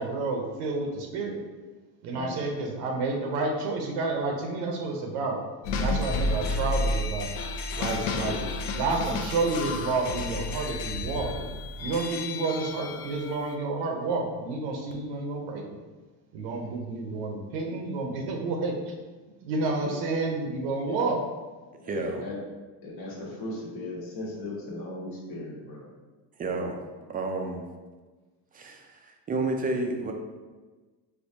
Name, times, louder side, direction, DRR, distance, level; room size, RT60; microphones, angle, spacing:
voice 1, 0.0-1.4 2.0-5.4 5.8-7.3 7.8-8.4 8.8-11.5 11.8-15.6 16.3-18.9 19.4-21.2, right 3 dB, 65° right, 2 dB, 0.7 m, -30 dB
voice 2, 2.2-2.5 8.2-8.3 19.8-19.9 20.9-21.0 21.8-22.3 22.8-25.9, left 2 dB, 55° left, -3 dB, 1.3 m, -38 dB
sound 1, 5.6-13.5, left 2 dB, 70° left, 0.6 m, -31 dB
voice 3, 21.8-22.3 26.3-26.8 27.1-27.6 28.5-30.1, right 2 dB, 20° right, 3 dB, 0.3 m, -31 dB
4.3 x 2.2 x 2.7 m, 1.3 s
supercardioid pair, 90°, 45 cm